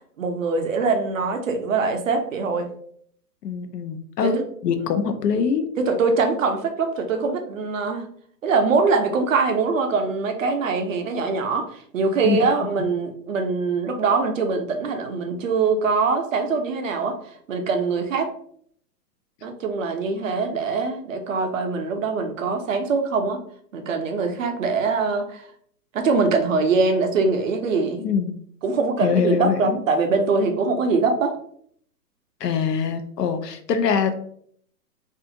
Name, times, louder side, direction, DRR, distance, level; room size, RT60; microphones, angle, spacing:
voice 1, 0.2-2.7 4.2-4.4 5.8-8.1 8.4-17.2 17.5-18.3 19.4-23.4 23.7-25.5 25.9-28.0 28.6-31.4, right 4 dB, 55° right, 4 dB, 0.5 m, -23 dB
voice 2, 3.4-5.7 12.2-12.4 28.0-28.3 29.0-29.8 32.4-34.2, left 6 dB, 75° left, 8 dB, 0.6 m, -23 dB
2.5 x 2.4 x 2.7 m, 0.62 s
hypercardioid pair, 155°, 49 cm